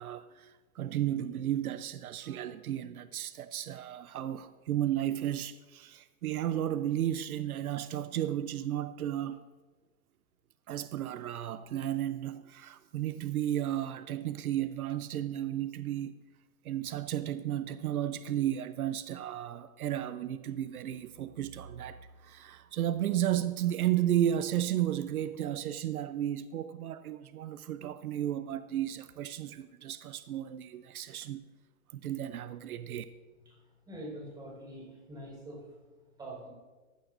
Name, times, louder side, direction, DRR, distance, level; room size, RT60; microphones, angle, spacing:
voice 1, 0.0-9.4 10.7-16.1 16.6-31.4 31.9-33.0, right 11 dB, 75° right, 0.8 m, -33 dB
voice 2, 33.9-35.6 36.2-36.5, right 1 dB, 10° right, 4.7 m, -44 dB
18.0 x 15.5 x 2.6 m
hypercardioid pair, 165°, 43 cm